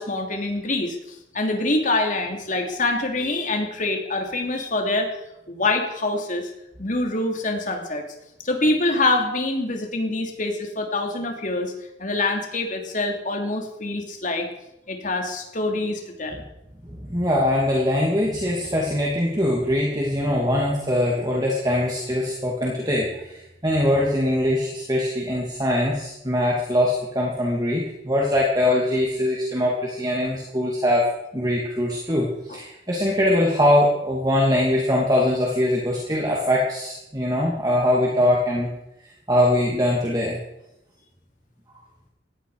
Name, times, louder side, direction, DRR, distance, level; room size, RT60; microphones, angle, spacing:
voice 1, 0.0-6.5 6.8-8.0 8.4-11.7 12.0-14.5 14.9-16.4 32.5-32.6, left 2 dB, 40° left, 3 dB, 3.0 m, -25 dB
voice 2, 16.9-31.1 31.3-38.7 39.3-40.4, left 1 dB, 20° right, -3 dB, 2.8 m, -22 dB
18.5 x 15.5 x 5.1 m, 0.86 s
head